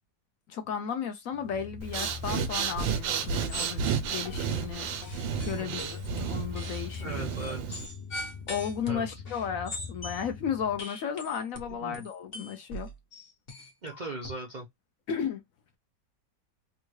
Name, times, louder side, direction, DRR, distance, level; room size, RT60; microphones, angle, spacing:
voice 1, 0.5-4.9 5.4-7.3 8.5-12.9 15.1-15.4, left 7 dB, 65° left, 0.8 m, -34 dB
sound 1, 1.3-10.8, left 5 dB, 85° left, 1.4 m, -43 dB
Breathing, 1.8-7.9, right 7 dB, 85° right, 1.4 m, -32 dB
sound 2, 2.7-3.0 3.2-3.9 4.2-4.7 5.0-10.3 10.8-14.3, left 1 dB, 40° left, 1.0 m, -41 dB
voice 2, 5.5-5.9 7.0-7.8 8.9-9.0 11.8-12.0 13.8-14.7, right 3 dB, 65° right, 0.4 m, -39 dB
3.6 x 2.3 x 3.1 m
omnidirectional pair, 2.0 m